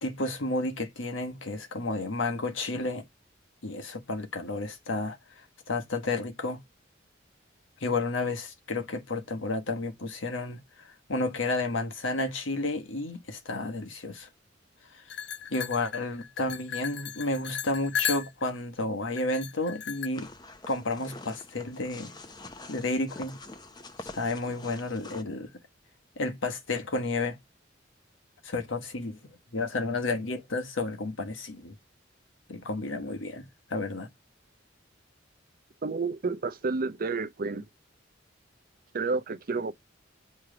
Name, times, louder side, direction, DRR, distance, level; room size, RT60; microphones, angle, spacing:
voice 1, 0.0-3.0 3.6-6.6 7.8-14.3 14.9-15.0 15.5-20.3 20.7-22.1 22.7-23.4 24.0-25.5 26.2-27.4 28.4-29.2 29.5-31.7 32.5-34.1, left 2 dB, 85° left, 1.3 m, -31 dB
sound 1, 15.1-18.6 19.2-20.1, left 8 dB, 60° left, 0.5 m, -35 dB
sound 2, 20.1-25.2, left 2 dB, 20° left, 0.7 m, -46 dB
voice 2, 35.8-37.6 38.9-39.7, right 4 dB, 50° right, 0.6 m, -30 dB
7.1 x 3.2 x 4.9 m
head